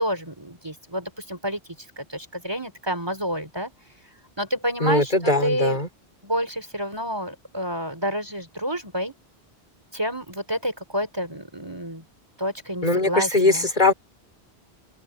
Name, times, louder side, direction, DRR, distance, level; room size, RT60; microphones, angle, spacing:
voice 1, 0.0-1.6 2.0-3.7 4.4-5.1 5.4-5.8 6.2-9.1 9.9-12.0 12.4-13.7, equal, 25° right, 3.6 m, -29 dB
voice 2, 4.8-5.9 12.8-13.9, left 2 dB, 45° left, 4.2 m, -20 dB
open air
omnidirectional pair, 1.1 m